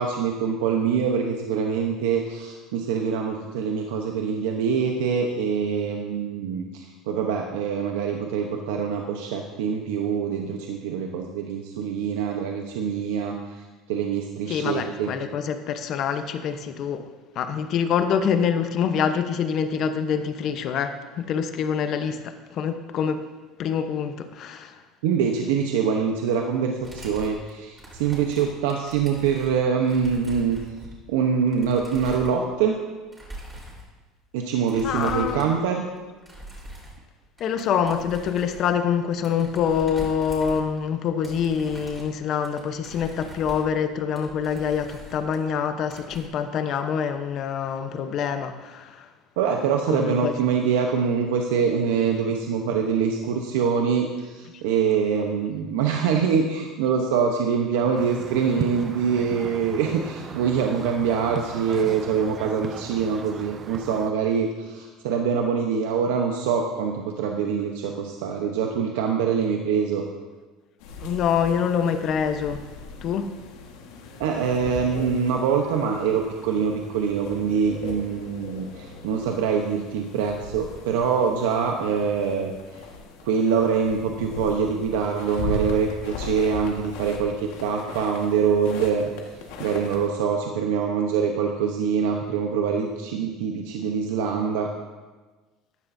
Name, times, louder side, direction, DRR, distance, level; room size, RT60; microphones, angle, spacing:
voice 1, 0.0-15.1 25.0-30.6 31.1-32.8 34.3-35.9 49.4-70.1 74.2-82.8 83.2-89.1 89.6-94.7, right 6 dB, 90° right, 2 dB, 0.9 m, -24 dB
voice 2, 14.5-17.1 17.4-23.2 23.6-24.8 34.7-35.5 37.4-49.1 49.9-50.3 71.0-72.6 73.0-73.3, left 7 dB, 50° left, 8 dB, 0.9 m, -25 dB
sound 1, 26.8-32.8 33.1-33.9 34.7-35.7 36.0-37.1 37.4-40.9 41.2-45.5 45.8-46.3, right 1 dB, 15° right, 3.9 m, -42 dB
sound 2, 57.9-64.1, right 6 dB, 30° right, 0.5 m, -37 dB
sound 3, 70.8-90.1, left 3 dB, 80° left, 1.6 m, -39 dB
14.5 x 10.0 x 2.7 m, 1.3 s
supercardioid pair, 120°, 0 cm